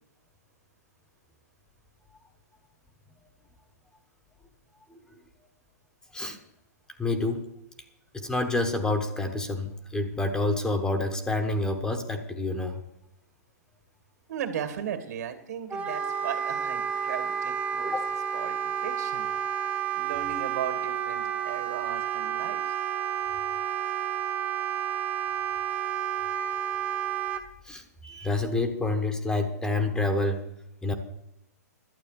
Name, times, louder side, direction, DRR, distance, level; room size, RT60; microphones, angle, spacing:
voice 1, 7.0-7.5 8.1-12.8 17.9-18.1 27.6-30.5 30.8-30.9, left 2 dB, 10° left, 7 dB, 1.1 m, -28 dB
voice 2, 14.3-18.0 18.3-19.3 19.9-22.8, right 8 dB, 70° right, 8 dB, 2.3 m, -36 dB
Wind instrument woodwind instrument, 15.7-27.4, right 8 dB, 15° right, 1.0 m, -30 dB
12.0 x 8.4 x 6.8 m, 0.85 s
hypercardioid pair, 145°, 9 cm